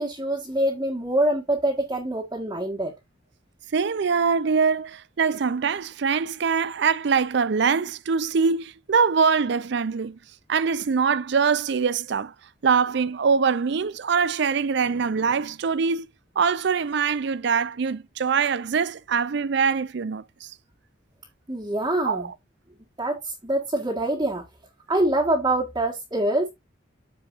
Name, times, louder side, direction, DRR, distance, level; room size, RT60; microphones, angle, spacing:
voice 1, 0.0-2.9 21.5-22.3 23.0-24.4 24.9-26.5, right 1 dB, 20° right, 1.6 m, -25 dB
voice 2, 3.7-10.2 10.5-12.3 12.6-16.1 16.4-20.5 22.0-22.3, right 5 dB, 60° right, 0.4 m, -23 dB
13.5 x 4.7 x 2.5 m
head